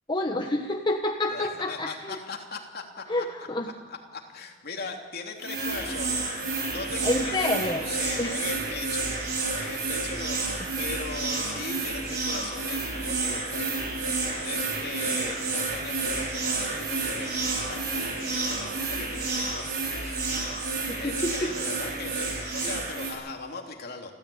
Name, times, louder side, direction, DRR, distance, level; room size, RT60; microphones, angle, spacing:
voice 1, 0.1-2.1 3.1-3.7 7.0-7.8 8.2-8.4 20.9-21.5 22.6-22.7, left 1 dB, 25° left, 3 dB, 1.2 m, -28 dB
voice 2, 1.3-3.5 3.9-6.2 6.7-14.1 14.4-20.2 21.0-24.1, left 3 dB, 55° left, 2 dB, 3.1 m, -39 dB
sound 1, 5.4-23.1, right 3 dB, 55° right, 6.0 m, -30 dB
30.0 x 13.5 x 8.7 m, 1.4 s
head